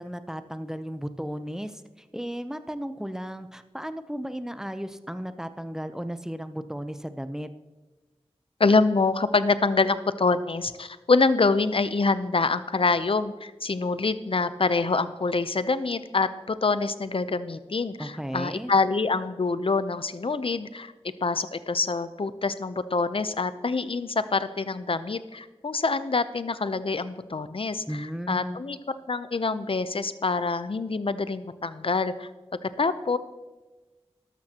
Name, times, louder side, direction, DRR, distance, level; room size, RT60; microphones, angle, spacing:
voice 1, 0.0-1.7 2.1-7.5 18.0-18.7 27.9-28.6, equal, 5° right, 10 dB, 0.7 m, -34 dB
voice 2, 8.6-20.9 21.2-28.8 29.1-32.3 32.6-33.2, left 3 dB, 60° left, 13 dB, 0.6 m, -25 dB
13.0 x 12.0 x 2.9 m, 1.2 s
wide cardioid pair, 60°, 11 cm